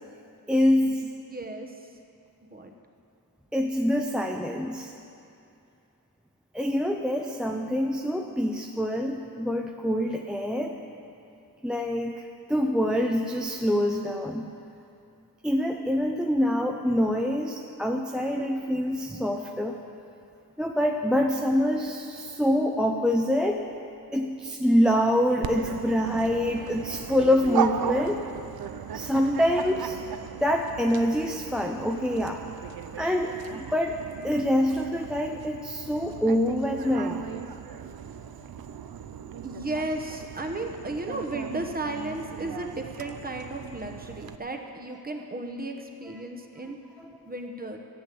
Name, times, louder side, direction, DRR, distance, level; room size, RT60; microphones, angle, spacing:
voice 1, 0.5-1.1 3.5-4.9 6.5-10.8 11.6-12.1 12.5-14.4 15.4-19.8 20.6-23.6 24.1-28.2 28.9-30.0 30.4-32.4 33.0-34.0 34.2-37.2, equal, ahead, 2 dB, 0.5 m, -25 dB
voice 2, 1.3-1.7 2.5-2.7 39.4-46.8 47.3-47.8, right 2 dB, 25° right, 3 dB, 1.0 m, -34 dB
Dog, 25.4-44.4, right 8 dB, 75° right, 0.6 m, -37 dB
13.5 x 8.3 x 8.4 m, 2.6 s
wide cardioid pair, 155°, 37 cm